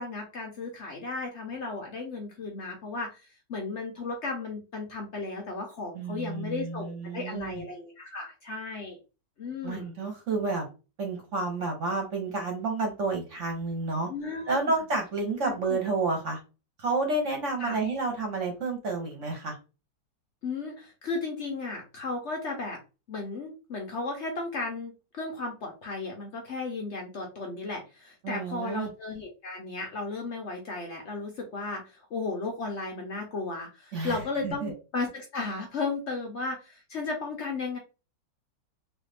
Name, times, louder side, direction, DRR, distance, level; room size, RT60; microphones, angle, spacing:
voice 1, 0.0-3.2 3.5-9.0 9.4-9.9 14.1-14.6 15.4-15.8 17.6-17.8 20.4-22.8 23.1-37.8, left 3 dB, 65° left, 2 dB, 0.7 m, -35 dB
voice 2, 5.9-7.7 9.6-10.7 11.0-14.1 14.5-16.4 16.8-19.6 28.2-28.9 33.9-34.2 34.4-34.7, right 3 dB, 50° right, 2 dB, 1.0 m, -30 dB
3.1 x 2.5 x 3.2 m, 0.31 s
omnidirectional pair, 2.0 m